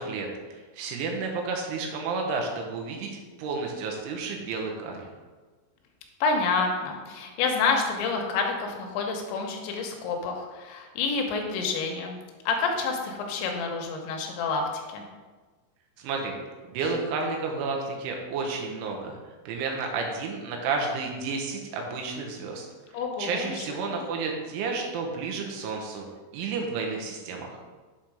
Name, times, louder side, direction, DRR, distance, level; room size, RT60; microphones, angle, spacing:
voice 1, 0.0-5.1 16.0-16.4 16.7-19.2 19.5-22.6 23.2-26.1 26.3-27.6, right 4 dB, 85° right, 1 dB, 3.4 m, -31 dB
voice 2, 6.2-12.2 12.5-15.0 22.9-23.7 23.9-24.0, left 4 dB, 80° left, 2 dB, 3.0 m, -28 dB
7.8 x 4.4 x 5.0 m, 1.3 s
omnidirectional pair, 5.6 m